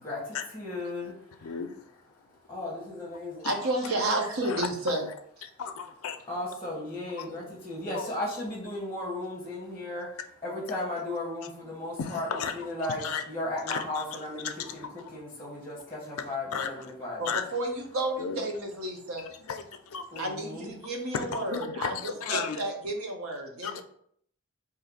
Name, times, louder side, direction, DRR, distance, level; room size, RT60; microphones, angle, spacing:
voice 1, 0.5-1.1 2.5-3.5 6.3-10.1 10.4-17.4 20.1-20.7, left 1 dB, 10° left, -4 dB, 0.8 m, -35 dB
voice 2, 3.4-5.1 17.2-19.2 20.2-23.8, right 2 dB, 75° right, 2 dB, 0.7 m, -31 dB
voice 3, 5.6-6.2 7.2-7.3 7.9-8.0 12.0-12.7 13.0-13.2 13.5-14.0 14.4-14.9 16.5-16.9 17.3-17.4 18.2-18.4 19.5-19.6 19.9-20.2 21.3-22.6 23.6-23.8, left 6 dB, 75° left, 6 dB, 0.4 m, -34 dB
2.6 x 2.5 x 4.0 m, 0.65 s
head